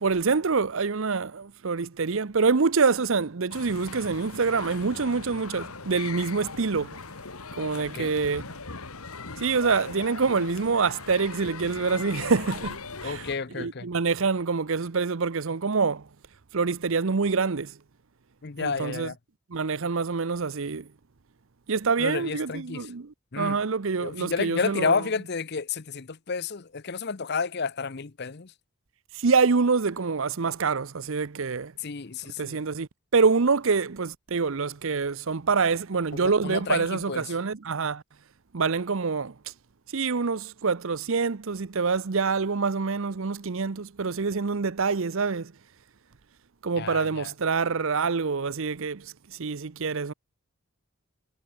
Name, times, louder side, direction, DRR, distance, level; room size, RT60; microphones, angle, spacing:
voice 1, 0.0-7.0 7.5-8.4 9.4-13.2 13.6-16.0 16.5-17.7 18.6-19.1 19.5-20.9 21.7-25.0 29.2-31.7 32.4-38.0 38.5-39.3 39.9-45.5 46.6-49.1 49.4-50.1, right 4 dB, 65° right, 0.7 m, -26 dB
sound 1, 3.5-13.4, left 4 dB, 80° left, 2.3 m, -39 dB
voice 2, 13.0-13.9 18.4-19.2 22.0-22.9 23.3-23.6 24.0-28.5 31.8-32.6 36.1-37.4 46.8-47.3, left 5 dB, 45° left, 0.7 m, -31 dB
head